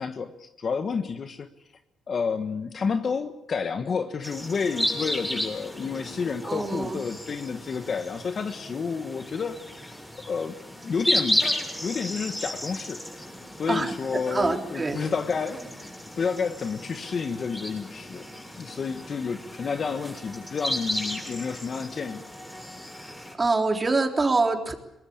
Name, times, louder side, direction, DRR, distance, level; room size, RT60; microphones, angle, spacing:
voice 1, 0.0-1.5 2.1-9.9 10.3-10.6 10.8-11.4 11.8-13.0 13.6-15.7 16.2-18.3 18.6-22.2, left 5 dB, 45° left, 8 dB, 1.4 m, -30 dB
sound 1, 4.2-23.3, left 1 dB, 5° left, 7.6 m, -34 dB
voice 2, 6.4-7.0 13.7-15.0 23.4-24.7, right 3 dB, 25° right, 4 dB, 3.6 m, -25 dB
23.5 x 20.0 x 8.6 m, 0.89 s
cardioid pair, 90°, 0 cm